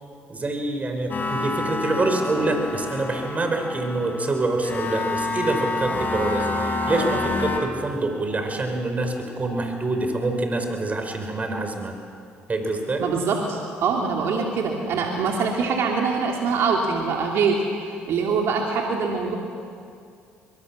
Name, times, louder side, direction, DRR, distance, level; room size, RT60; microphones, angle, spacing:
voice 1, 0.3-11.9 12.5-13.0, right 2 dB, 30° right, 4 dB, 5.0 m, -26 dB
sound 1, 1.1-7.6, left 2 dB, 40° left, 4.4 m, -28 dB
voice 2, 13.0-17.6 18.1-19.3, right 5 dB, 65° right, 0 dB, 2.8 m, -23 dB
23.0 x 22.5 x 7.4 m, 2.4 s
supercardioid pair, 65°, 5 cm